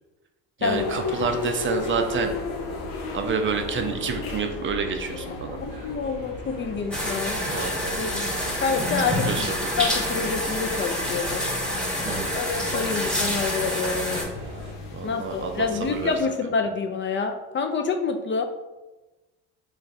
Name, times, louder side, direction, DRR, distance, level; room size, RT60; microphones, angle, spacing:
sound 1, 0.6-16.2, left 3 dB, 75° left, 0.6 m, -35 dB
voice 1, 0.6-2.3 3.1-5.6 7.5-8.0 9.0-9.9 12.0-12.4 14.9-16.1, right 5 dB, 35° right, 5 dB, 0.5 m, -29 dB
voice 2, 5.6-7.4 8.0-8.3 8.6-9.5 9.8-11.4 12.4-14.3 15.0-18.4, left 5 dB, 35° left, 5 dB, 0.4 m, -27 dB
sound 2, 5.6-14.7, right 2 dB, 90° right, 0.8 m, -43 dB
sound 3, 6.9-14.2, equal, ahead, 0.9 m, -27 dB
3.1 x 2.4 x 4.0 m, 1.1 s
hypercardioid pair, 65°, 35 cm